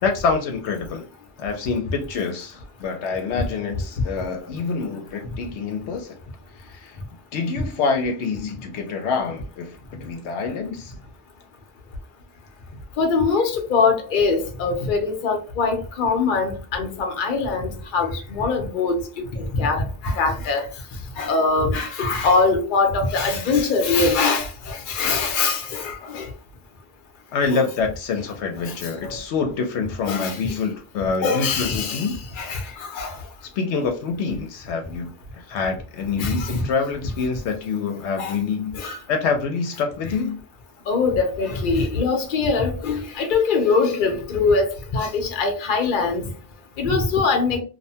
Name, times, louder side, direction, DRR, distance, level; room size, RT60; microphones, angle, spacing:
voice 1, 0.0-1.0 1.4-6.2 6.6-7.0 7.3-10.9 27.3-32.2 33.4-38.8 39.1-40.4, left 5 dB, 80° left, 0.9 m, -26 dB
voice 2, 13.0-20.7 21.2-26.3 29.0-29.1 30.1-30.4 31.2-32.1 32.4-33.1 36.2-36.7 38.2-38.3 38.8-39.0 40.9-46.3 46.8-47.6, left 4 dB, 55° left, 0.7 m, -22 dB
2.7 x 2.1 x 2.7 m
omnidirectional pair, 1.2 m